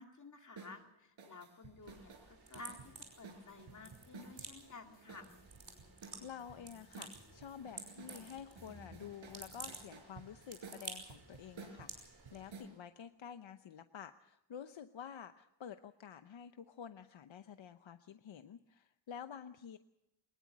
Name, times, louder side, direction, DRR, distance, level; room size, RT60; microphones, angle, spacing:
voice 1, 0.0-5.4, left 3 dB, 40° left, 4 dB, 2.3 m, -54 dB
sound 1, 0.6-0.8 1.2-4.5 5.1-6.6 6.9-8.3 8.6-12.7, right 4 dB, 85° right, 4.9 m, -53 dB
sound 2, 1.8-12.5, right 4 dB, 55° right, 5.5 m, -53 dB
sound 3, 2.8-9.9, left 1 dB, 10° left, 5.5 m, -63 dB
voice 2, 6.2-19.8, left 8 dB, 75° left, 9 dB, 0.9 m, -50 dB
22.5 x 20.5 x 6.2 m, 0.89 s
wide cardioid pair, 140°, 46 cm